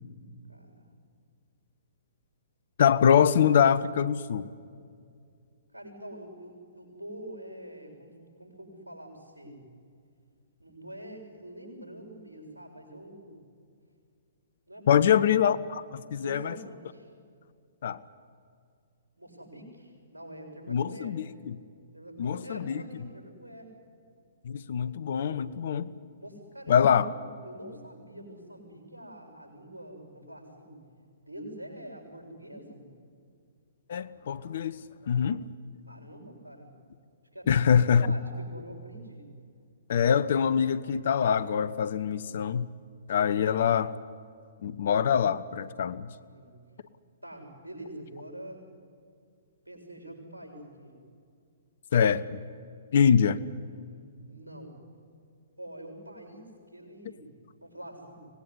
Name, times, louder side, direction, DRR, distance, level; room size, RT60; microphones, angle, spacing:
voice 1, 0.5-0.9 5.7-9.6 10.6-13.4 14.7-15.0 16.0-17.1 19.2-21.1 21.9-23.7 26.2-30.8 31.2-32.8 35.9-36.7 37.3-39.3 41.9-42.3 46.2-46.5 47.2-48.6 49.7-50.9 54.2-54.8 55.6-57.3 57.6-58.2, right 1 dB, 85° right, 2 dB, 7.1 m, -45 dB
voice 2, 2.8-4.5 14.9-16.5 17.8-18.0 20.7-21.6 22.2-22.8 24.4-25.9 26.7-27.1 33.9-34.8 35.1-35.4 37.5-38.2 39.9-42.7 43.1-43.9 44.6-46.1 51.9-52.4 52.9-53.4, left 7 dB, 55° left, 17 dB, 1.0 m, -24 dB
24.5 x 19.5 x 9.8 m, 2.3 s
figure-of-eight pair, 120°, 0 cm